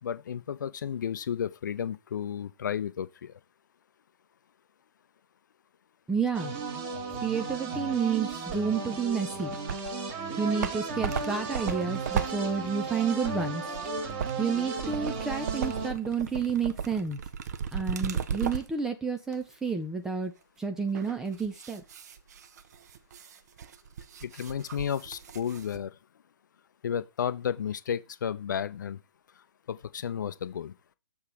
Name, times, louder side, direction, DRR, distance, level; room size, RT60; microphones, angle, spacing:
voice 1, 0.0-3.4 24.2-26.0 26.8-29.0 29.7-30.7, left 8 dB, 45° left, 0.6 m, -33 dB
voice 2, 6.1-6.6 7.2-9.5 10.4-13.6 14.4-17.2 17.7-20.3 20.6-21.8, right 5 dB, 5° right, 0.4 m, -30 dB
sound 1, 6.3-15.9, right 4 dB, 25° right, 1.6 m, -35 dB
sound 2, 9.4-10.0 10.4-18.8 19.3-19.4 20.9-25.8, right 7 dB, 40° right, 0.7 m, -36 dB
6.5 x 3.6 x 6.0 m
figure-of-eight pair, 130°, 14 cm